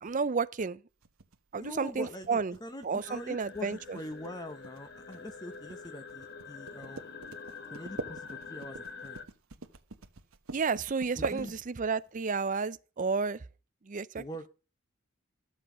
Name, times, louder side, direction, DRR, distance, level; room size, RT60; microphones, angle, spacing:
voice 1, 0.0-0.8 1.5-2.6 2.8-4.0 10.5-13.4 13.9-14.2, right 5 dB, 40° right, 0.5 m, -31 dB
sound 1, 1.0-12.1, right 3 dB, 85° right, 1.2 m, -45 dB
voice 2, 1.6-7.1 7.7-9.2 11.1-11.6 14.2-14.5, left 1 dB, 20° left, 0.9 m, -43 dB
sound 2, 3.0-9.2, left 5 dB, 55° left, 1.3 m, -46 dB
13.5 x 7.7 x 5.0 m
head